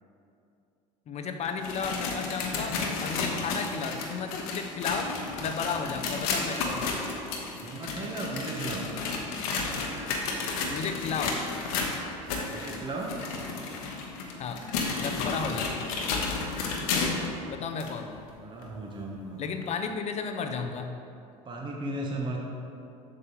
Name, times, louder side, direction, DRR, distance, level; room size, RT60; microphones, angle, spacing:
voice 1, 1.1-5.1 5.4-7.0 10.7-11.4 14.4-14.7 15.0-15.9 17.5-18.2 19.4-21.0, left 5 dB, 35° left, 6 dB, 0.6 m, -33 dB
sound 1, 1.4-17.3 17.8-17.9 18.6-18.7 19.6-19.7, left 4 dB, 70° left, 1.0 m, -32 dB
voice 2, 7.6-8.9 12.3-13.1 18.4-19.4 21.4-22.4, right 2 dB, 25° right, -1 dB, 0.9 m, -35 dB
7.6 x 6.2 x 3.0 m, 2.7 s
hypercardioid pair, 75°, 19 cm